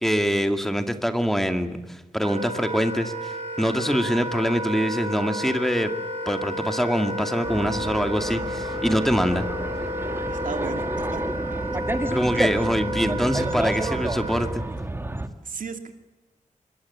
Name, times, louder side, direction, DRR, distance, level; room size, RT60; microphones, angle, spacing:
voice 1, 0.0-5.9 6.3-9.5 12.1-14.6, equal, ahead, 7 dB, 2.2 m, -24 dB
Wind instrument woodwind instrument, 2.2-14.5, equal, 45° right, 8.0 m, -31 dB
sound 1, 7.4-15.3, right 2 dB, 15° right, 1.9 m, -30 dB
voice 2, 10.3-11.2 15.4-16.0, right 5 dB, 85° right, 7 dB, 2.6 m, -35 dB
26.0 x 22.0 x 8.5 m, 1.1 s
wide cardioid pair, 110°, 14 cm